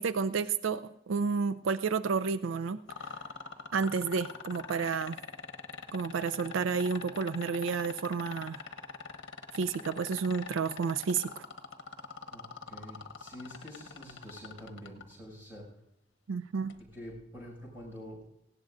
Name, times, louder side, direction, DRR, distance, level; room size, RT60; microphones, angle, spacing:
voice 1, 0.0-2.8 3.7-5.2 5.9-8.6 9.5-11.4 16.3-16.7, right 5 dB, 85° right, 13 dB, 0.4 m, -31 dB
sound 1, 2.9-15.0 16.7-16.8, left 5 dB, 70° left, 1.0 m, -42 dB
voice 2, 12.3-15.7 16.9-18.2, equal, 10° right, -3 dB, 6.2 m, -47 dB
18.5 x 17.0 x 2.6 m, 0.82 s
head